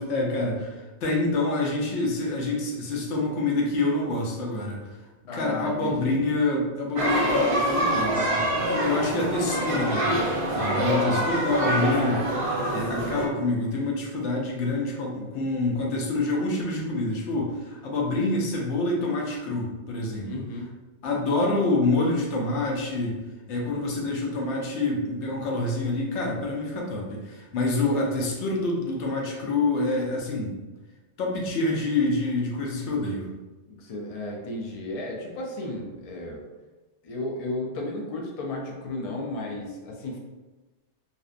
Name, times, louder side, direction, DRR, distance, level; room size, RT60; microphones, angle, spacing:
voice 1, 0.0-4.8 5.3-8.3 8.7-10.2 10.5-12.3 12.7-20.4 21.0-23.2 23.5-30.5 31.2-33.3, left 2 dB, 80° left, -1 dB, 0.9 m, -27 dB
voice 2, 5.3-6.2 10.9-11.3 20.2-20.7 33.7-36.4 37.0-40.2, left 2 dB, 60° left, -1 dB, 0.4 m, -34 dB
sound 1, 7.0-13.3, right 1 dB, 55° right, 0.3 m, -25 dB
2.6 x 2.1 x 2.4 m, 1.2 s
omnidirectional pair, 1.2 m